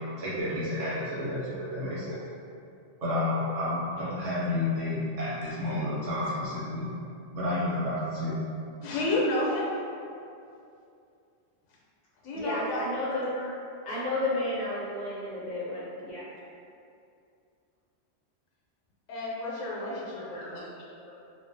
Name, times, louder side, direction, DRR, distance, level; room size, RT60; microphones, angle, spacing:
voice 1, 0.2-2.2 3.0-6.8 7.3-8.4, left 1 dB, 75° right, -11 dB, 1.2 m, -30 dB
voice 2, 8.8-9.7 12.2-12.9 19.1-20.6, left 1 dB, 75° left, -5 dB, 0.9 m, -30 dB
voice 3, 12.3-13.5 13.9-16.3 19.8-21.2, left 1 dB, 45° left, -8 dB, 0.7 m, -33 dB
2.6 x 2.3 x 2.6 m, 2.5 s
omnidirectional pair, 1.3 m